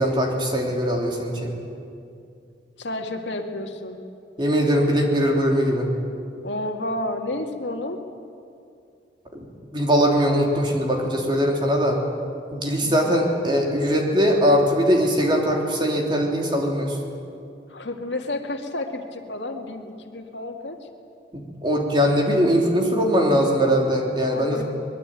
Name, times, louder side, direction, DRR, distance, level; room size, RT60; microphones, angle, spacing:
voice 1, 0.0-1.6 4.4-5.9 9.3-9.4 9.7-12.0 12.5-17.0 21.3-24.6, equal, 25° right, 0 dB, 3.4 m, -21 dB
voice 2, 2.8-4.0 6.4-8.0 12.8-13.3 17.7-20.8 24.3-24.6, left 1 dB, 75° left, 3 dB, 2.2 m, -31 dB
23.5 x 21.0 x 9.2 m, 2.5 s
head